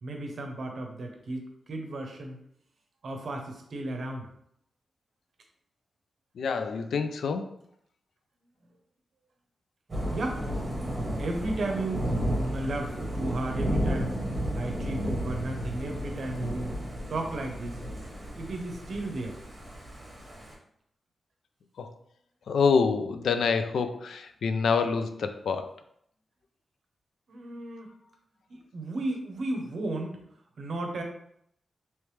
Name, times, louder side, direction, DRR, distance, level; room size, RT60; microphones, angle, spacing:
voice 1, 0.0-2.4 3.0-4.3 10.1-10.4 11.2-12.1 12.4-14.2 14.5-16.8 17.1-17.8 18.4-19.4 27.3-27.9 28.5-30.2 30.6-31.0, right 2 dB, 55° right, 2 dB, 0.7 m, -34 dB
voice 2, 6.4-7.5 21.8-21.9 22.5-25.7, left 5 dB, 85° left, 9 dB, 0.3 m, -26 dB
Thunder / Rain, 9.9-20.5, equal, 20° right, 1.2 m, -33 dB
3.2 x 3.0 x 3.2 m, 0.71 s
wide cardioid pair, 165°, 0 cm